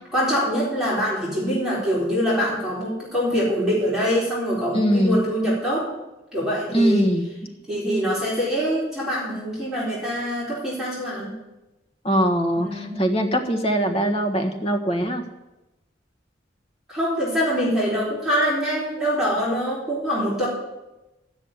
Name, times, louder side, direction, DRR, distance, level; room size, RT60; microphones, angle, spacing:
voice 1, 0.1-5.9 6.3-7.0 7.7-11.3 12.6-12.9 16.9-20.5, equal, 5° right, -8 dB, 4.0 m, -24 dB
voice 2, 4.7-5.2 6.7-7.3 12.0-15.2, equal, 30° left, 3 dB, 1.4 m, -21 dB
13.0 x 6.4 x 9.6 m, 1.0 s
head